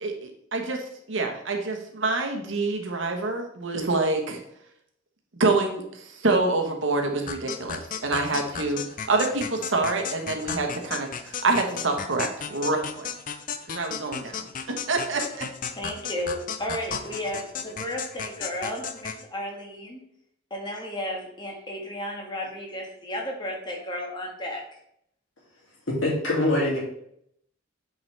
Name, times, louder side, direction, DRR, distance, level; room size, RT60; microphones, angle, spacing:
voice 1, 0.5-4.4 5.4-8.8 9.1-13.1 13.7-14.4 14.9-15.5, right 3 dB, 65° right, 3 dB, 1.2 m, -26 dB
sound 1, 7.3-19.2, left 6 dB, 45° left, 0.5 m, -35 dB
voice 2, 15.8-20.0 20.5-24.6, left 1 dB, 25° left, 0 dB, 1.6 m, -33 dB
voice 3, 25.9-26.8, left 1 dB, 70° left, -3 dB, 2.7 m, -23 dB
9.1 x 4.8 x 3.4 m, 0.72 s
head